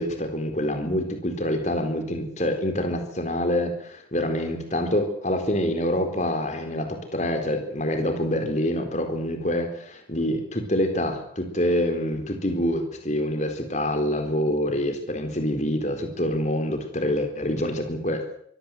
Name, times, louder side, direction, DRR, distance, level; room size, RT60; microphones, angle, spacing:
voice 1, 0.0-18.2, left 1 dB, 40° left, 5 dB, 4.3 m, -26 dB
24.0 x 17.0 x 7.9 m, 0.67 s
head